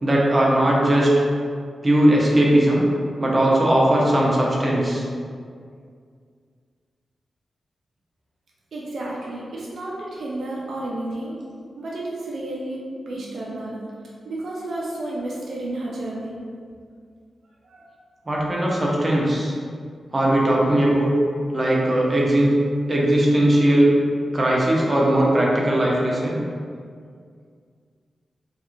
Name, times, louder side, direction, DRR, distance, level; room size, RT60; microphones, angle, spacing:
voice 1, 0.0-1.1 1.8-2.8 3.2-5.0 18.3-19.5 20.1-21.1 21.5-22.5 22.9-23.9 24.3-26.4, right 1 dB, 30° right, -4 dB, 0.7 m, -19 dB
voice 2, 8.7-11.4 11.8-13.9 14.2-16.4 17.6-17.8, right 1 dB, 75° right, -4 dB, 0.5 m, -31 dB
3.1 x 2.4 x 3.0 m, 2.1 s
cardioid pair, 75°, 0 cm